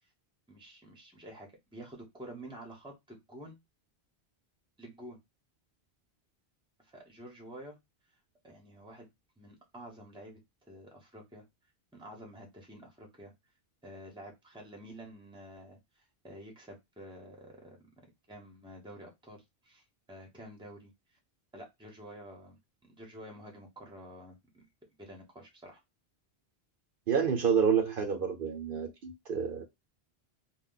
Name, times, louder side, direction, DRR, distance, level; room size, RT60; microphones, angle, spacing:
voice 1, 0.5-3.6 4.8-5.2 6.8-7.8 8.4-9.1 9.4-11.4 11.9-13.3 13.8-17.8 18.3-21.2 21.5-24.6 25.0-25.8, right 1 dB, 5° right, 0.8 m, -49 dB
voice 2, 27.1-29.6, right 7 dB, 60° right, 0.8 m, -28 dB
2.3 x 2.2 x 3.7 m
omnidirectional pair, 1.1 m